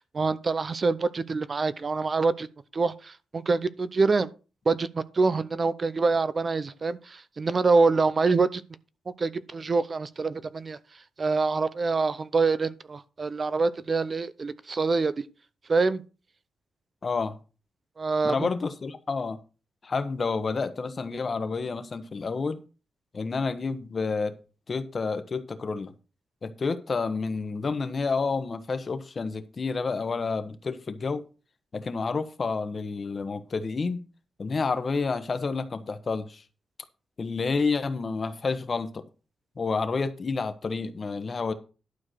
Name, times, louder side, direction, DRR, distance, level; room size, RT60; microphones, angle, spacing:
voice 1, 0.0-2.5 2.7-4.3 4.7-8.6 9.2-10.8 11.2-15.2 15.7-16.0 18.0-18.5, right 4 dB, 40° right, 0.7 m, -25 dB
voice 2, 17.0-17.4 18.2-19.4 19.8-22.6 23.1-24.3 24.7-25.9 26.4-31.2 31.7-34.0 34.4-36.4 37.2-39.0 39.6-41.5, left 4 dB, 45° left, 1.3 m, -29 dB
12.0 x 4.7 x 6.5 m
cardioid pair, 90°, 0 cm